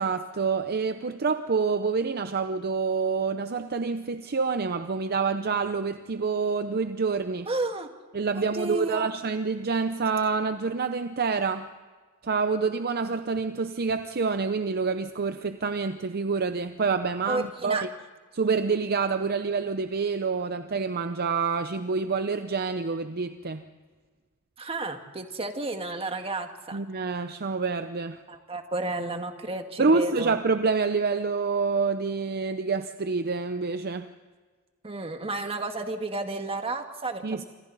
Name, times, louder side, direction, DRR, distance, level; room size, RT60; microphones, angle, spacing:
voice 1, 0.0-7.5 8.1-11.7 12.2-17.9 18.3-23.6 26.7-28.2 29.8-34.1 37.2-37.4, right 4 dB, 45° right, 9 dB, 0.7 m, -27 dB
voice 2, 7.5-7.9 8.3-9.1 17.3-17.8 24.6-26.8 28.3-30.4 34.8-37.4, right 2 dB, 25° right, 5 dB, 1.7 m, -32 dB
27.5 x 25.5 x 4.1 m, 1.4 s
head